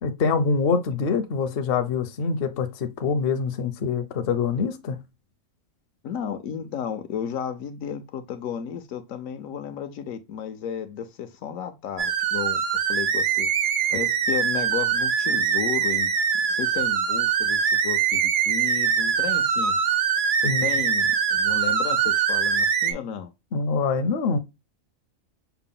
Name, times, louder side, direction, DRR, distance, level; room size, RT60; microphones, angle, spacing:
voice 1, 0.0-5.0 20.4-20.6 23.5-24.4, left 5 dB, 55° left, 0.7 m, -25 dB
voice 2, 6.0-12.6 12.9-13.5 13.9-16.1 16.5-19.8 20.4-23.3, left 8 dB, 80° left, 1.0 m, -33 dB
sound 1, 12.0-22.9, right 7 dB, 70° right, 0.5 m, -23 dB
5.8 x 2.1 x 3.7 m
omnidirectional pair, 1.4 m